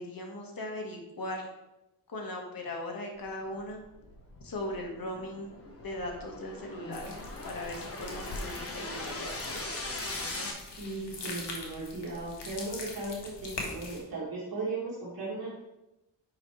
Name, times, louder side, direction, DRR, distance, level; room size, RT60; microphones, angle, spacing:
voice 1, 0.0-1.5 2.1-3.8 4.4-5.5 5.8-7.2 7.4-9.7, left 1 dB, 55° left, 1 dB, 1.5 m, -38 dB
sound 1, 3.5-10.5, left 2 dB, 35° left, 1.3 m, -40 dB
sound 2, 6.9-14.0, left 3 dB, 85° left, 1.5 m, -42 dB
voice 2, 10.8-15.6, right 2 dB, 55° right, -7 dB, 2.0 m, -37 dB
7.3 x 5.2 x 3.2 m, 0.95 s
cardioid pair, 70°, 41 cm